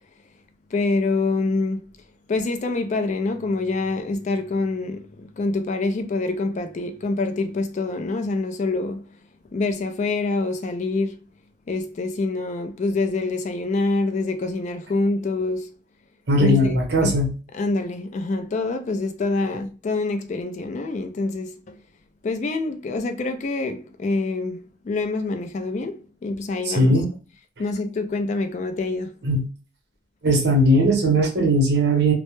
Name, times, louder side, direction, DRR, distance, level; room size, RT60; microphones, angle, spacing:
voice 1, 0.7-1.9 2.3-9.1 9.5-11.2 11.7-15.7 16.4-17.2 17.5-21.8 22.2-27.0 27.6-29.1, left 3 dB, 40° left, 0.3 m, -26 dB
voice 2, 16.3-17.3 26.7-27.0 29.2-29.4 30.2-32.1, equal, 60° right, 0.7 m, -18 dB
2.1 x 2.0 x 2.9 m
head